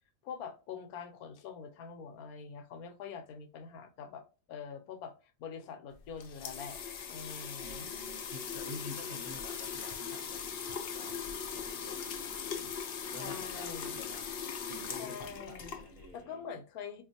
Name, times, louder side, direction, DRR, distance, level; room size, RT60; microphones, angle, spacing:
voice 1, 0.2-5.1 5.4-6.8 7.1-7.9 13.1-14.0 15.0-15.8 16.1-17.0, left 6 dB, 85° left, 1.1 m, -44 dB
sound 1, 5.9-16.2, left 7 dB, 65° left, 0.6 m, -40 dB
voice 2, 7.6-11.1 11.4-12.7 13.1-14.3 14.7-16.4, left 1 dB, 40° right, 0.9 m, -49 dB
3.8 x 2.4 x 2.7 m
omnidirectional pair, 1.5 m